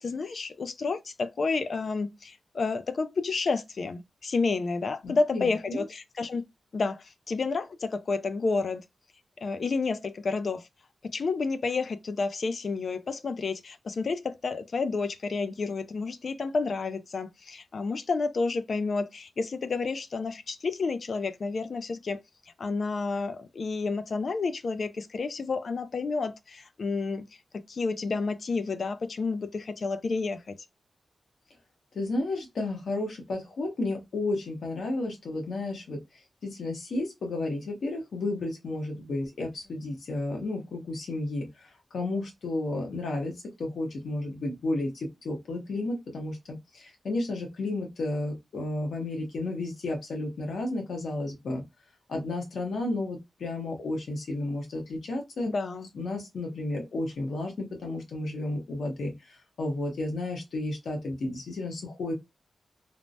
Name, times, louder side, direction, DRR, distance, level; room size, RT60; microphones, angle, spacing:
voice 1, 0.0-6.4 6.7-8.8 9.4-10.7 11.1-22.2 22.6-27.3 27.7-30.6 55.5-55.9, left 4 dB, 50° left, 0.3 m, -30 dB
voice 2, 5.0-5.8 31.9-36.0 36.4-51.6 52.1-55.5 55.9-62.1, left 2 dB, 80° left, 1.1 m, -32 dB
3.2 x 2.1 x 2.6 m
wide cardioid pair, 160°, 0 cm